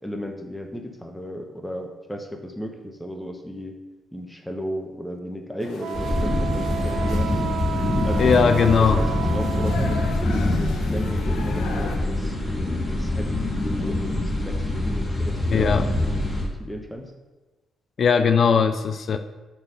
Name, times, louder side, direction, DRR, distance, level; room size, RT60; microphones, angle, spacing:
voice 1, 0.0-3.8 4.1-7.6 8.0-12.4 12.8-17.1, equal, 5° left, 3 dB, 1.0 m, -34 dB
sound 1, 5.6-12.0, left 4 dB, 80° left, 1.2 m, -37 dB
Wind instrument woodwind instrument, 5.8-10.2, right 9 dB, 70° right, 0.3 m, -32 dB
sound 2, 5.9-16.4, left 1 dB, 30° left, 2.9 m, -24 dB
voice 2, 8.2-9.0 15.5-15.9 18.0-19.2, left 6 dB, 50° left, 9 dB, 0.5 m, -19 dB
9.2 x 4.7 x 6.8 m, 1.2 s
cardioid pair, 90°, 0 cm